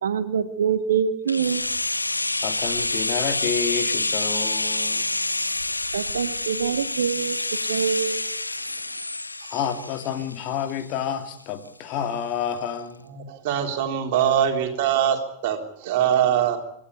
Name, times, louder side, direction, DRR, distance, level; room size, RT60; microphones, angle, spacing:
voice 1, 0.0-1.6 5.9-7.4 7.7-8.2, right 7 dB, 65° right, 1.1 m, -25 dB
sound 1, 1.3-11.1 11.4-11.5, left 2 dB, 85° left, 0.9 m, -27 dB
voice 2, 2.4-5.1 9.5-13.1, left 8 dB, 40° left, 2.6 m, -29 dB
voice 3, 13.1-16.6, right 9 dB, 50° right, 3.5 m, -23 dB
26.5 x 12.5 x 9.7 m
figure-of-eight pair, 90°, 0 cm